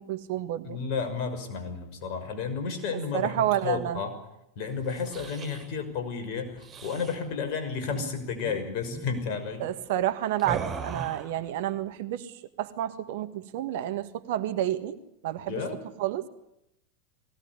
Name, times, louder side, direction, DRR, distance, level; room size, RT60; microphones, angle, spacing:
voice 1, 0.0-0.8 3.1-4.0 9.6-12.3 12.6-15.0 15.2-15.6 16.0-16.3, right 12 dB, 60° right, 10 dB, 1.7 m, -30 dB
voice 2, 0.6-3.3 3.6-4.1 4.6-9.7 15.5-15.8, left 5 dB, 50° left, 7 dB, 5.9 m, -32 dB
sound 1, 4.8-5.7 6.6-7.2 7.8-8.0 8.3-8.5 8.8-9.1 10.4-11.3, right 6 dB, 30° right, 7.0 m, -37 dB
21.0 x 18.0 x 9.8 m, 0.83 s
figure-of-eight pair, 90°, 0 cm